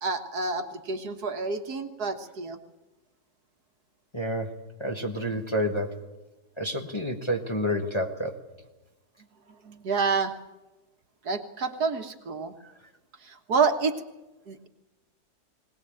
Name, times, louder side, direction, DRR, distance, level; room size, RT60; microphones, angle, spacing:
voice 1, 0.0-2.6 9.7-10.3 11.3-12.5 13.3-14.0 14.5-14.7, right 4 dB, 65° right, 6 dB, 1.9 m, -28 dB
voice 2, 4.1-6.0 6.6-8.4, equal, 15° left, 2 dB, 1.4 m, -29 dB
21.0 x 18.5 x 8.9 m, 1.1 s
omnidirectional pair, 1.8 m